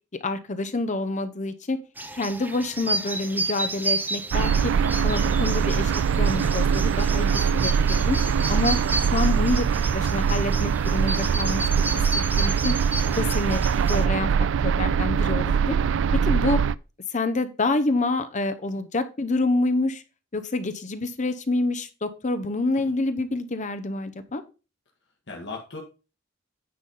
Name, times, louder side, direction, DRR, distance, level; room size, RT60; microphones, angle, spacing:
voice 1, 0.2-1.8 2.1-4.7 5.0-8.2 8.5-8.8 9.0-9.7 9.9-12.0 12.4-12.7 13.1-13.6 13.9-14.3 14.6-15.8 16.2-16.6 17.1-20.0 20.3-24.4, left 2 dB, 40° left, 10 dB, 0.8 m, -27 dB
sound 1, 2.0-14.0, right 2 dB, 10° right, 0.7 m, -32 dB
sound 2, 4.3-16.7, right 6 dB, 65° right, 0.4 m, -22 dB
voice 2, 9.1-9.6 15.4-16.0 22.7-22.9 25.3-25.8, left 3 dB, 60° left, -1 dB, 1.7 m, -40 dB
9.5 x 4.2 x 5.5 m, 0.32 s
head